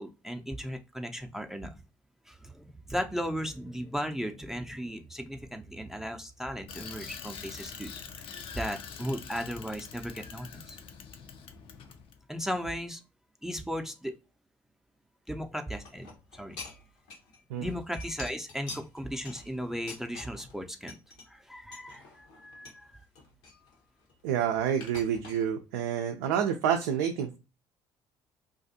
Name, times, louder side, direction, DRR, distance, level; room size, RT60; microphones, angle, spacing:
voice 1, 0.0-1.7 2.3-10.8 12.3-13.0 13.4-14.2 15.3-16.6 17.6-21.0 21.3-23.0, equal, 5° right, 6 dB, 0.5 m, -36 dB
Bicycle, 6.7-12.2, left 6 dB, 55° left, 0.5 m, -44 dB
sound 1, 15.7-17.4 17.7-20.6 20.9-21.2 21.7-22.8 23.1-24.3 24.8-25.4, left 3 dB, 75° left, 0.9 m, -46 dB
voice 2, 24.2-27.4, right 8 dB, 75° right, 3 dB, 0.4 m, -28 dB
2.4 x 2.3 x 2.7 m, 0.29 s
hypercardioid pair, 55°, 11 cm